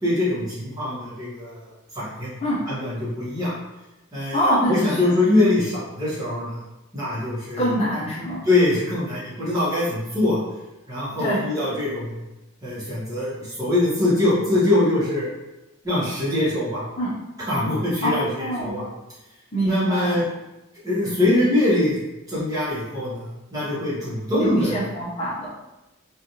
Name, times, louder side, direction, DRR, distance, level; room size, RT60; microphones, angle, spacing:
voice 1, 0.0-1.6 1.9-2.3 2.7-3.5 4.1-4.4 4.7-6.6 6.9-7.7 8.5-10.4 10.9-12.1 12.6-15.3 15.8-16.8 17.5-18.8 19.6-20.2 20.8-22.0 22.3-24.8, left 2 dB, 15° right, -10 dB, 1.1 m, -23 dB
voice 2, 4.3-5.1 7.6-8.4 11.2-11.4 17.0-17.1 18.0-18.1 18.4-18.7 19.5-20.2 24.4-25.5, equal, 30° left, -8 dB, 0.6 m, -24 dB
3.2 x 2.4 x 2.7 m, 0.99 s
head